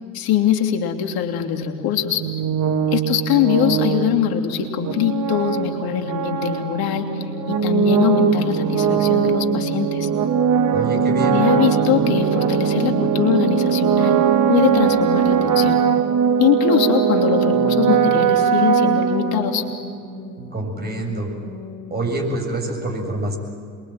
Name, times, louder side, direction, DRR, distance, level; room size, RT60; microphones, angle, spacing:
voice 1, 0.1-2.2 2.9-10.1 11.3-14.2 14.5-15.8 16.4-19.6, left 9 dB, 50° left, 4 dB, 3.0 m, -22 dB
sound 1, 2.2-19.8, right 7 dB, 40° right, 2.2 m, -20 dB
sound 2, 7.0-22.5, equal, 90° right, 7.9 m, -38 dB
voice 2, 10.7-11.4 20.5-21.3 21.9-23.4, right 2 dB, 20° right, 2 dB, 7.4 m, -26 dB
27.5 x 22.5 x 9.1 m, 2.2 s
figure-of-eight pair, 70°, 46 cm